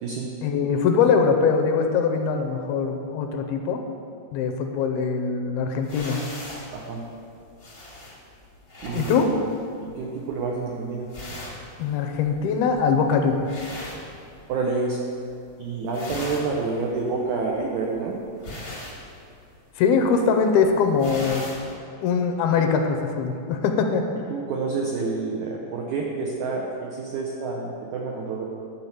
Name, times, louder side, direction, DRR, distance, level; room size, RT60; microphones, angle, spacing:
voice 1, 0.4-3.8 4.3-6.2 8.9-9.3 11.8-13.5 19.8-21.4 22.0-24.0, left 5 dB, 85° left, 5 dB, 2.5 m, -22 dB
sound 1, 5.8-14.8 15.1-15.5 15.8-21.7, left 1 dB, 60° left, 0.6 m, -40 dB
voice 2, 8.8-9.3 9.8-11.1 14.5-15.0 15.6-18.2 24.3-28.4, right 4 dB, 85° right, -1 dB, 1.6 m, -28 dB
11.5 x 4.5 x 6.7 m, 2.5 s
omnidirectional pair, 4.5 m